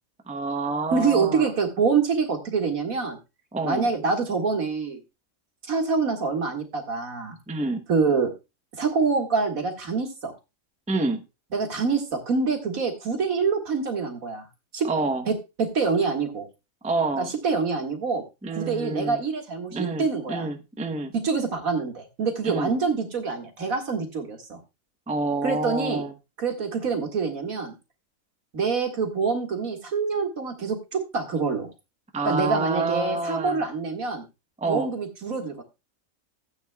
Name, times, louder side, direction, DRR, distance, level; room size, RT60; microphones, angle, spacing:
voice 1, 0.3-1.5 3.5-3.9 7.5-7.8 10.9-11.2 14.9-15.2 16.8-17.3 18.4-19.2 19.7-21.1 22.4-22.7 25.1-26.1 32.1-33.6 34.6-34.9, right 3 dB, 5° right, 6 dB, 0.7 m, -28 dB
voice 2, 0.9-3.2 3.6-5.0 5.7-7.4 7.9-8.3 8.8-10.3 11.5-14.5 14.7-14.9 15.3-16.5 17.2-18.2 18.6-20.5 21.1-24.6 25.4-26.0 26.4-27.7 28.5-31.7 32.3-34.3 34.7-35.6, right 5 dB, 75° right, 3 dB, 2.4 m, -26 dB
16.5 x 8.8 x 2.3 m, 0.26 s
omnidirectional pair, 1.5 m